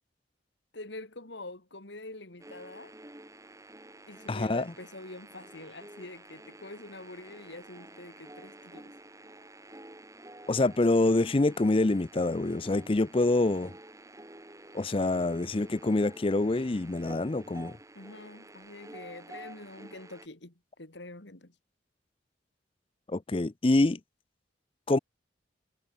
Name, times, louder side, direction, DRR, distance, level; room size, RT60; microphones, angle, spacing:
voice 1, 0.7-2.9 4.1-8.9 17.9-21.5, left 2 dB, 70° left, 2.6 m, -45 dB
sound 1, 2.4-20.3, right 1 dB, 15° right, 4.1 m, -50 dB
voice 2, 4.3-4.6 10.5-13.7 14.7-17.8 23.1-24.0 24.9-25.0, left 2 dB, 30° left, 0.5 m, -26 dB
head